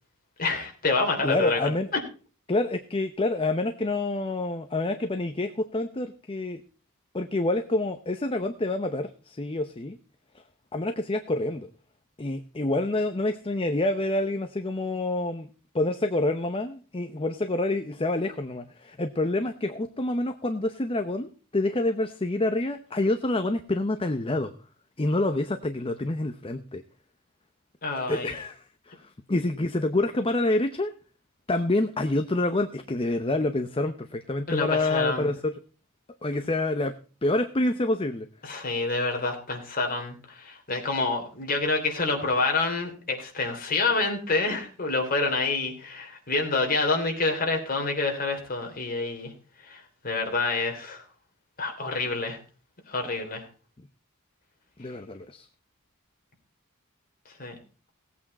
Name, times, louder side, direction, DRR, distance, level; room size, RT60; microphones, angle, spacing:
voice 1, 0.4-1.7 27.8-28.3 34.5-35.3 38.4-49.3 49.7-51.0 51.6-52.4 52.9-53.4 57.4-57.5, left 3 dB, 40° left, 3 dB, 3.2 m, -27 dB
voice 2, 1.2-1.9 2.5-6.6 7.1-10.0 10.7-11.7 12.2-15.5 15.7-24.5 25.0-26.8 28.0-30.9 31.5-35.5 36.2-36.9 37.2-38.3 54.8-55.5, left 2 dB, 25° left, 7 dB, 0.8 m, -27 dB
17.5 x 8.5 x 4.2 m, 0.37 s
head